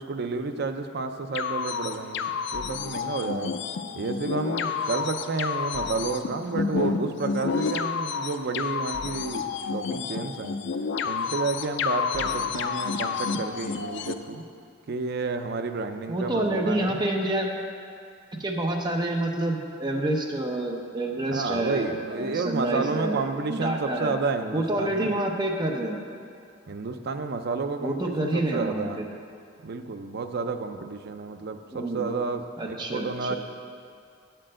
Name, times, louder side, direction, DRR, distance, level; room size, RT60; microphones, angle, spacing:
voice 1, 0.0-3.5 3.9-10.6 11.0-14.4 14.9-17.0 21.3-25.1 26.7-29.0 29.6-33.4, right 4 dB, 55° right, 7 dB, 0.5 m, -31 dB
sound 1, 1.3-14.1, left 5 dB, 65° left, 0.4 m, -30 dB
voice 2, 16.1-17.5 18.4-23.2 23.5-24.1 24.5-26.0 27.8-29.0 31.7-32.1 32.6-33.4, right 1 dB, 20° right, 1 dB, 0.7 m, -28 dB
8.6 x 4.5 x 7.4 m, 2.4 s
head